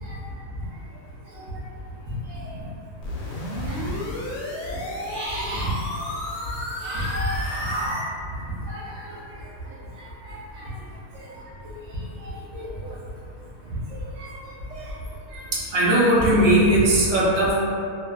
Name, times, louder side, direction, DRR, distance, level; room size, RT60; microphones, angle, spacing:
sound 1, 3.0-8.0, left 1 dB, 85° left, 1.1 m, -32 dB
voice 1, 5.0-6.0 6.8-8.0 8.7-9.2 10.2-10.7 11.3-11.4 11.6-11.7 12.2-12.9 14.2-14.4 14.7-14.9 15.3-17.6, right 1 dB, 65° right, -6 dB, 0.8 m, -23 dB
2.6 x 2.3 x 2.2 m, 2.5 s
omnidirectional pair, 1.7 m